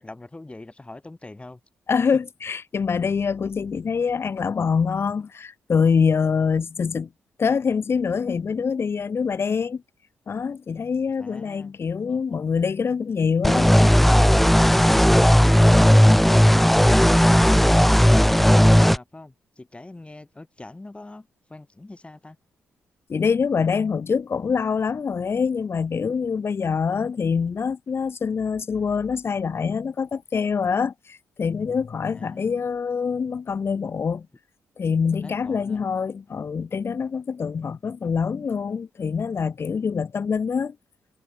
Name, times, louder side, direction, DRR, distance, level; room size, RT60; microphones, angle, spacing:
voice 1, 0.0-1.6 2.1-2.2 11.2-11.7 18.3-22.4 32.1-32.7 35.2-35.9, left 2 dB, 20° left, 4.1 m, -43 dB
voice 2, 1.9-7.1 7.4-9.8 10.3-13.7 23.1-34.3 34.8-40.8, left 6 dB, 50° left, 1.1 m, -25 dB
sound 1, 13.4-19.0, equal, 5° left, 0.5 m, -15 dB
supercardioid pair, 55°, 5 cm